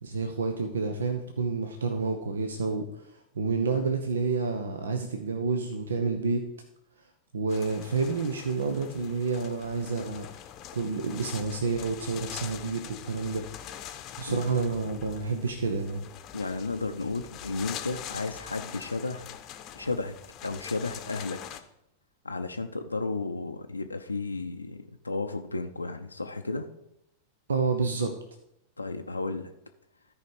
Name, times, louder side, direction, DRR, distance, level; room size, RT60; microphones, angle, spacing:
voice 1, 0.0-3.0 3.3-6.5 7.3-10.3 10.7-13.5 14.2-16.1 27.5-28.1, right 4 dB, 70° right, 6 dB, 0.8 m, -29 dB
sound 1, 7.5-21.6, left 10 dB, 35° left, 0.8 m, -43 dB
voice 2, 16.3-19.4 19.8-21.4 22.2-26.7 28.8-29.5, left 3 dB, 80° left, 5 dB, 0.5 m, -33 dB
13.0 x 4.9 x 4.9 m, 0.81 s
figure-of-eight pair, 90°, 0 cm